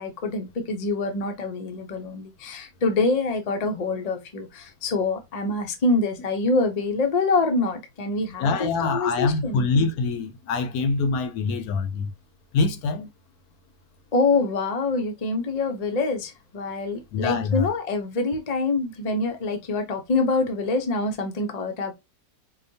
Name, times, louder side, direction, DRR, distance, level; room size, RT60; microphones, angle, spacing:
voice 1, 0.0-9.7 14.1-21.9, left 3 dB, 45° left, 0.5 m, -25 dB
voice 2, 8.4-12.1 12.5-13.1 17.1-17.7, left 4 dB, 70° left, 1.0 m, -24 dB
4.8 x 2.2 x 2.7 m
omnidirectional pair, 1.7 m